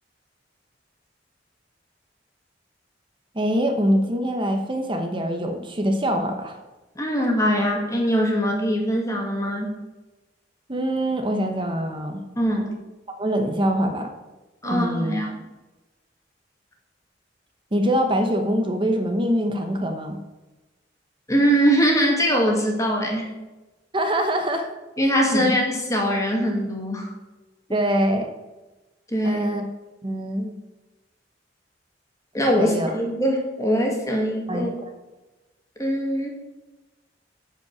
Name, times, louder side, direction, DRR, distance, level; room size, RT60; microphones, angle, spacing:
voice 1, 3.3-6.6 10.7-12.2 13.1-14.1 14.6-15.2 17.7-20.2 23.9-24.7 25.3-25.5 27.7-28.3 29.2-29.7 30.0-30.5 32.6-32.9 34.5-34.9, equal, 30° right, 5 dB, 1.0 m, -24 dB
voice 2, 7.0-9.7 12.4-12.7 14.6-15.3 21.3-23.3 25.0-27.1 29.1-29.5 32.3-34.7 35.8-36.3, equal, 20° left, 0 dB, 2.1 m, -22 dB
9.9 x 5.4 x 7.1 m, 1.1 s
head